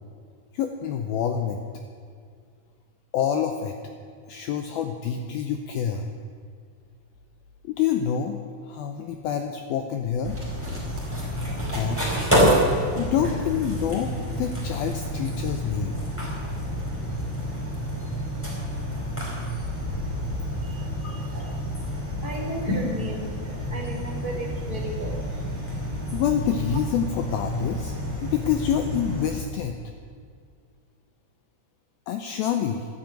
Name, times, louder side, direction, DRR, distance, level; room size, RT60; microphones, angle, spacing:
voice 1, 0.5-1.6 3.1-3.8 4.3-6.1 7.7-8.4 8.7-10.4 11.7-12.0 13.0-15.9 21.0-21.2 26.1-27.9 28.2-29.8 32.1-32.9, left 8 dB, 80° left, 6 dB, 2.2 m, -27 dB
sound 1, 10.2-29.4, equal, 5° left, 4.0 m, -28 dB
voice 2, 20.6-21.2 22.2-25.2, equal, 45° left, -2 dB, 0.6 m, -33 dB
13.0 x 11.5 x 9.1 m, 2.1 s
omnidirectional pair, 5.2 m